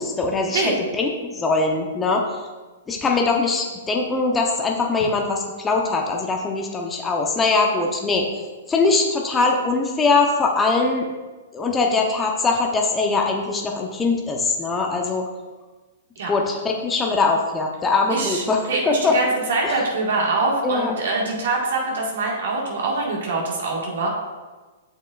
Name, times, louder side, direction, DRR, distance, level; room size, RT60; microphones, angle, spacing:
voice 1, 0.0-2.2 2.9-8.2 8.7-11.0 11.5-15.3 16.3-18.6 18.9-19.1 19.6-19.8 20.6-20.9, left 3 dB, 15° left, 1 dB, 0.9 m, -22 dB
voice 2, 18.1-24.1, right 3 dB, 70° right, -2 dB, 1.8 m, -24 dB
7.9 x 6.5 x 2.5 m, 1.3 s
hypercardioid pair, 120°, 0 cm